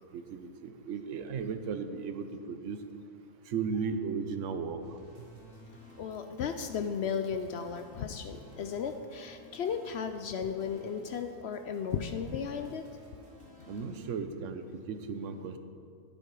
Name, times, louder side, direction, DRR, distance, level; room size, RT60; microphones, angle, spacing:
voice 1, 0.1-2.8 3.5-4.8 13.7-15.6, right 5 dB, 60° right, 9 dB, 1.0 m, -35 dB
sound 1, 4.8-14.1, left 1 dB, 40° right, 1.7 m, -55 dB
voice 2, 6.0-12.8, left 6 dB, 70° left, 7 dB, 0.6 m, -35 dB
10.5 x 9.7 x 4.7 m, 2.4 s
omnidirectional pair, 1.6 m